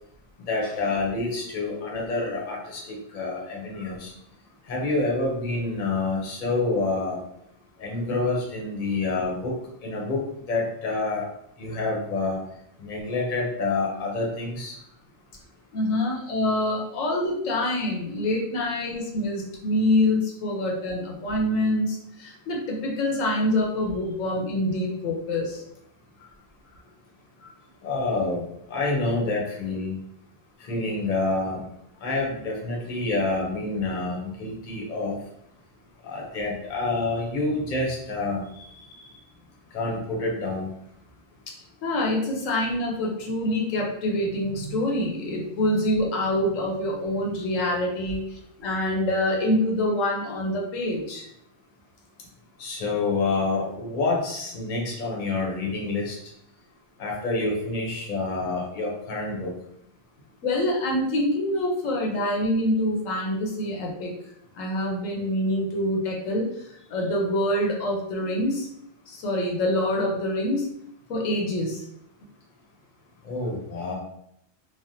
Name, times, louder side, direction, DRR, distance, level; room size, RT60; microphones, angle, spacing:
voice 1, 0.5-4.1 4.7-7.2 7.8-9.5 9.8-10.2 10.5-11.3 11.6-12.4 12.8-14.7 16.0-16.1 27.4-27.5 27.8-29.9 30.6-31.6 32.0-35.2 36.0-38.7 39.7-40.7 52.6-56.2 57.0-59.5 73.2-73.9, left 3 dB, 45° left, -2 dB, 0.8 m, -27 dB
voice 2, 15.7-25.6 41.8-51.3 60.4-64.1 64.5-66.4 66.9-68.7 69.1-70.7 71.1-71.8, left 1 dB, 80° left, -1 dB, 1.1 m, -26 dB
3.2 x 2.1 x 2.6 m, 0.73 s
omnidirectional pair, 1.3 m